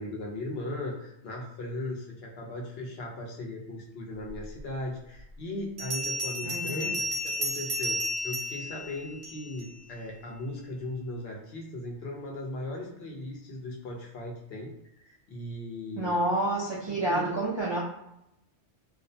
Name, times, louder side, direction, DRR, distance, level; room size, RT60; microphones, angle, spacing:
voice 1, 0.0-14.7 15.0-16.2 16.9-17.3, left 1 dB, 70° left, -1 dB, 0.8 m, -38 dB
Bell, 4.6-4.7 5.8-9.7, equal, 80° right, 1.0 m, -32 dB
voice 2, 6.4-6.9 16.0-17.8, right 1 dB, 45° right, -6 dB, 0.3 m, -29 dB
2.4 x 2.0 x 2.6 m, 0.81 s
omnidirectional pair, 1.1 m